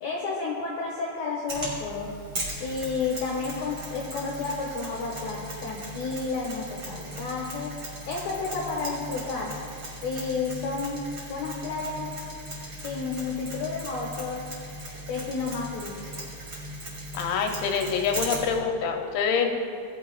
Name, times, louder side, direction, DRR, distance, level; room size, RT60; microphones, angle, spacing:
voice 1, 0.0-2.1 2.6-7.7 8.1-9.5 10.0-12.1 12.8-14.4 15.1-16.0, left 4 dB, 70° left, -3 dB, 2.5 m, -31 dB
Mechanisms, 1.5-18.6, right 1 dB, 30° right, 2.5 m, -38 dB
voice 2, 17.1-19.6, left 6 dB, 85° left, 3 dB, 2.9 m, -26 dB
18.0 x 11.0 x 2.4 m, 2.6 s
omnidirectional pair, 5.5 m